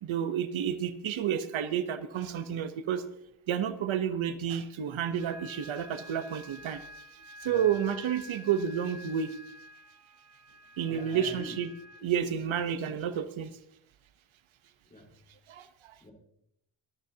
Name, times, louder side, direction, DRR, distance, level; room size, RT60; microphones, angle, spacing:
voice 1, 0.0-3.0 3.5-6.9 7.4-9.4 10.8-11.7 12.0-13.5 15.5-15.9, right 8 dB, 85° right, 11 dB, 1.0 m, -30 dB
sound 1, 5.2-12.0, left 1 dB, 30° right, 1.7 m, -49 dB
voice 2, 10.9-11.6 12.0-12.1 14.9-15.1 16.0-16.1, left 1 dB, 20° left, 0 dB, 4.1 m, -44 dB
24.5 x 13.5 x 2.8 m, 0.74 s
wide cardioid pair, 155°, 46 cm